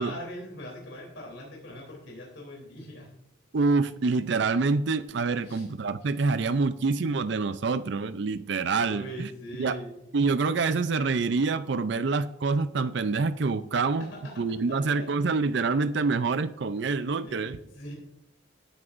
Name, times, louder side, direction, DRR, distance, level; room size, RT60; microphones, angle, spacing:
voice 1, 0.0-3.1 5.4-5.7 8.8-10.0 14.0-15.1 16.9-17.9, equal, 75° left, -2 dB, 3.2 m, -41 dB
voice 2, 3.5-9.3 9.6-9.8 10.1-17.6, right 4 dB, 60° right, 12 dB, 0.5 m, -26 dB
18.0 x 9.7 x 2.5 m, 0.83 s
head